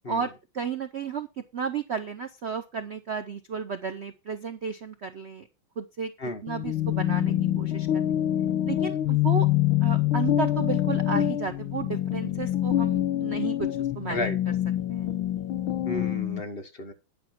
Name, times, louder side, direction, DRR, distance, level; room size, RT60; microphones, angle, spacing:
voice 1, 0.1-5.5 5.8-6.1 6.4-8.1 8.6-9.5 9.8-14.3 14.9-15.1, right 6 dB, 75° right, 9 dB, 0.6 m, -33 dB
sound 1, 6.5-16.4, left 13 dB, 90° left, 1.6 m, -26 dB
voice 2, 15.8-16.9, left 2 dB, 35° left, 5 dB, 1.3 m, -32 dB
11.0 x 6.1 x 5.8 m, 0.27 s
omnidirectional pair, 2.2 m